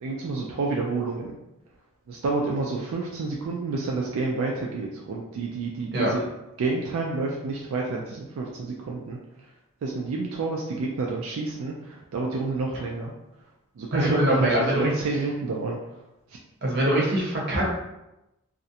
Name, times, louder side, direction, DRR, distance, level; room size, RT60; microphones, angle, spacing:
voice 1, 0.0-1.3 2.1-6.2 6.6-9.2 9.8-13.1 13.8-15.8, right 3 dB, 80° right, -1 dB, 0.3 m, -29 dB
voice 2, 13.9-14.8 16.6-17.6, right 1 dB, 50° right, -4 dB, 0.7 m, -23 dB
2.4 x 2.1 x 2.7 m, 0.93 s
head